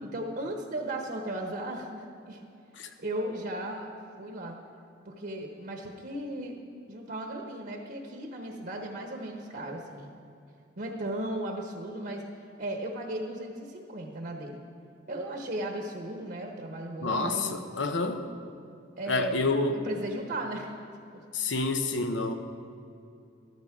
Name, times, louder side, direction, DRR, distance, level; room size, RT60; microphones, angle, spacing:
voice 1, 0.0-2.5 3.0-3.9 4.2-4.6 5.0-6.6 6.9-10.1 10.8-12.2 12.6-14.6 15.1-17.7 19.0-19.4 19.7-20.8 21.1-21.2, right 1 dB, 55° right, 2 dB, 1.1 m, -36 dB
voice 2, 17.0-18.2 19.1-19.8 21.3-22.3, left 3 dB, 90° left, 7 dB, 0.9 m, -28 dB
13.5 x 13.5 x 3.7 m, 2.6 s
head